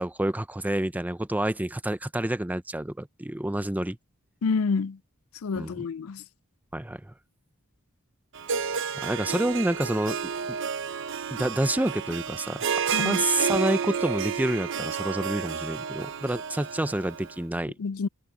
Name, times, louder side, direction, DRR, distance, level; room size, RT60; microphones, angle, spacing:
voice 1, 0.0-4.0 5.6-5.9 6.7-7.1 8.9-10.2 10.5-10.6 11.3-17.7, right 1 dB, 10° right, 0.6 m, -28 dB
voice 2, 4.4-5.0 5.4-6.2 12.9-13.2 17.8-18.1, left 4 dB, 85° left, 0.4 m, -28 dB
Harp, 8.3-17.4, right 6 dB, 65° right, 0.7 m, -31 dB
head